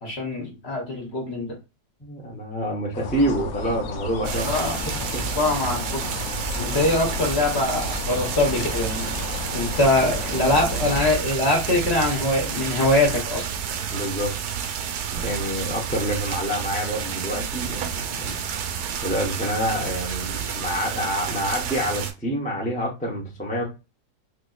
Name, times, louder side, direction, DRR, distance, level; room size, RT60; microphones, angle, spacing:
voice 1, 0.0-1.5 4.4-4.7 5.2-6.1 6.6-13.4, left 2 dB, 45° left, 0 dB, 1.2 m, -23 dB
voice 2, 2.0-4.5 5.1-5.2 13.9-14.3 15.2-18.4 19.0-23.6, equal, 10° left, -2 dB, 0.5 m, -27 dB
sound 1, 2.9-11.1, left 4 dB, 70° left, 1.0 m, -33 dB
sound 2, 4.2-22.1, right 8 dB, 85° right, 1.2 m, -30 dB
4.3 x 2.6 x 2.3 m, 0.27 s
omnidirectional pair, 1.7 m